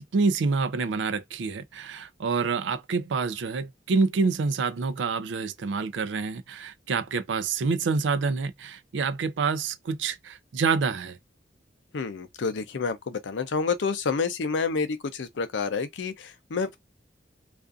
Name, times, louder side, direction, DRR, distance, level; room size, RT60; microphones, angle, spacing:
voice 1, 0.1-11.2, right 4 dB, 85° right, 0.4 m, -27 dB
voice 2, 11.9-16.8, left 5 dB, 80° left, 0.5 m, -29 dB
2.4 x 2.4 x 2.4 m
head